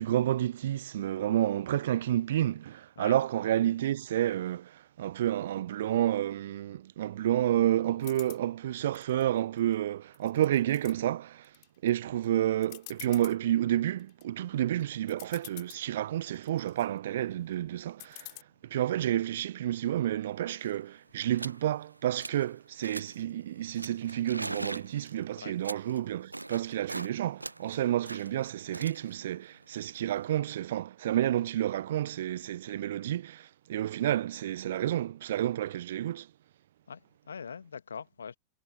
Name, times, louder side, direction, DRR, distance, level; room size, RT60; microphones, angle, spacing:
voice 1, 0.0-11.5 11.8-18.3 18.6-36.3, right 12 dB, 60° right, 0.5 m, -30 dB
sound 1, 8.0-8.4 8.9-9.7 10.1-10.9 11.4-11.9 12.2-12.3 12.6-13.4 13.9-14.2 14.8-14.9 15.1-15.8 16.3-16.9 18.0-18.4, left 35 dB, 45° left, 3.8 m, -47 dB
sound 2, 20.3-20.4 20.5-20.8 21.3-21.6 22.0-22.5 22.8-23.3 23.7-27.1 27.4-30.4, right 2 dB, 85° right, 0.9 m, -42 dB
voice 2, 36.9-38.4, left 6 dB, 70° left, 1.4 m, -43 dB
figure-of-eight pair, 90°, 0 cm